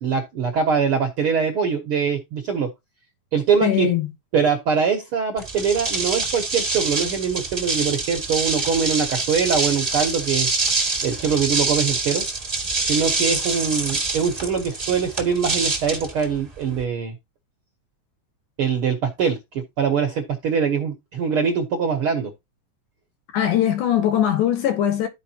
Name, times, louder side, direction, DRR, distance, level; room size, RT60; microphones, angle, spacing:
voice 1, 0.0-2.7 3.3-3.9 4.3-10.5 11.0-12.2 12.9-17.1 18.6-22.3, right 6 dB, 65° right, 1.4 m, -23 dB
voice 2, 3.6-4.1 23.3-25.1, left 11 dB, 70° left, 2.4 m, -20 dB
sound 1, 5.4-16.8, right 3 dB, 30° right, 0.7 m, -25 dB
14.0 x 4.9 x 2.8 m
omnidirectional pair, 3.9 m